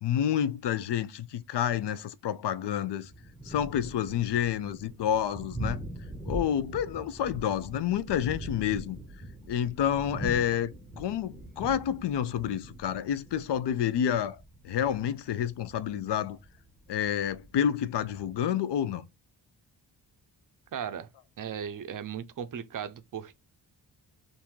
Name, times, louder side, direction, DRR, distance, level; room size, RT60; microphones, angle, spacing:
voice 1, 0.0-3.1 3.4-5.8 6.2-9.0 9.5-14.4 14.6-16.4 16.9-19.0, left 9 dB, 70° left, 0.5 m, -29 dB
Thunder, 3.0-18.3, right 1 dB, ahead, 0.7 m, -42 dB
voice 2, 20.7-21.1 21.4-23.4, right 8 dB, 50° right, 0.4 m, -37 dB
3.6 x 2.6 x 4.4 m
wide cardioid pair, 180°, 43 cm